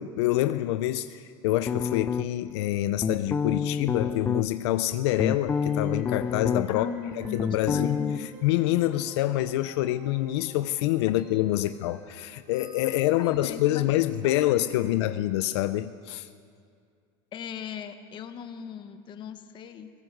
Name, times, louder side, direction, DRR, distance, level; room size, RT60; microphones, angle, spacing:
voice 1, 0.0-6.9 7.2-8.0 8.4-16.3, left 15 dB, 80° left, 12 dB, 0.7 m, -26 dB
sound 1, 1.7-2.5 3.0-4.4 4.9-6.9 7.1-8.2, left 6 dB, 15° left, 0.4 m, -28 dB
sound 2, 5.1-15.3, right 4 dB, 40° right, 3.3 m, -50 dB
voice 2, 6.7-8.3 13.2-15.1 17.3-19.9, left 7 dB, 35° left, 8 dB, 1.4 m, -38 dB
20.0 x 17.0 x 7.9 m, 2.2 s
supercardioid pair, 135°, 14 cm